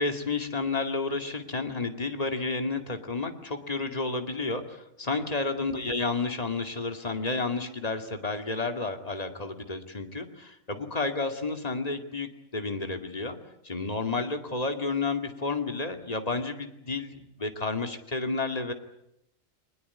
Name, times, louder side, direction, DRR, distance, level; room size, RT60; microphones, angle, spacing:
voice 1, 0.0-13.4 13.6-18.7, left 3 dB, 30° left, 6 dB, 2.4 m, -31 dB
23.5 x 20.5 x 9.7 m, 0.79 s
omnidirectional pair, 1.4 m